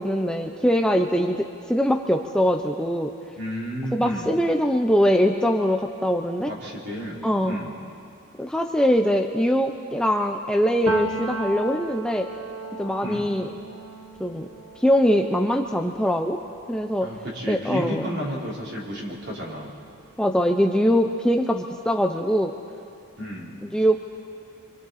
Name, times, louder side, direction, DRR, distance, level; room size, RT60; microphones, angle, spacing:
voice 1, 0.0-3.1 3.9-6.5 7.2-7.6 8.4-12.3 12.8-13.5 14.2-14.5 14.8-16.4 16.7-17.1 17.5-18.2 20.2-22.5 23.7-24.0, equal, 5° left, 3 dB, 0.6 m, -22 dB
voice 2, 3.4-4.3 6.5-7.7 13.0-13.3 17.0-19.7 23.2-23.6, equal, 55° right, -5 dB, 4.5 m, -32 dB
Piano, 10.9-18.5 18.8-20.4, right 1 dB, 85° right, 1.6 m, -37 dB
28.0 x 24.5 x 4.2 m, 2.4 s
head